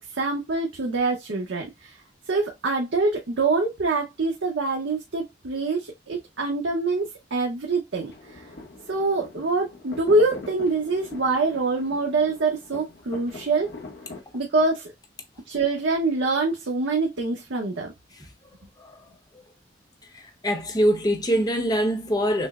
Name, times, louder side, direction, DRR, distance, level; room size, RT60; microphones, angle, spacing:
voice 1, 0.1-2.0 2.3-8.4 8.9-13.7 14.3-14.9 15.5-17.9, right 3 dB, 80° right, 0.8 m, -25 dB
sound 1, 8.1-14.2, left 3 dB, 60° left, 0.9 m, -43 dB
voice 2, 20.1-22.5, equal, 20° left, 0.8 m, -24 dB
6.1 x 2.0 x 2.3 m
head